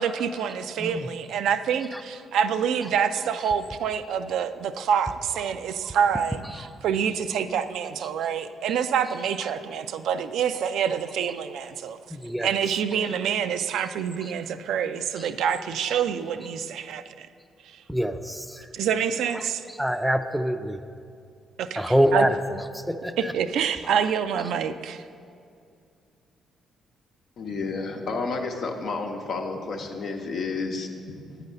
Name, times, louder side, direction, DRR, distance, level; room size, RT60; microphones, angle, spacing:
voice 1, 0.0-12.0 12.4-17.3 17.7-17.8 18.7-19.6 21.6-22.3 23.2-25.0, right 7 dB, 70° right, 10 dB, 0.3 m, -27 dB
voice 2, 0.8-1.1 12.1-12.5 17.9-18.4 19.8-20.8 21.8-22.6 22.9-23.3, equal, 5° right, 8 dB, 0.5 m, -24 dB
voice 3, 27.4-31.2, left 4 dB, 65° left, 3 dB, 0.8 m, -31 dB
8.8 x 4.1 x 6.6 m, 2.4 s
hypercardioid pair, 50°, 0 cm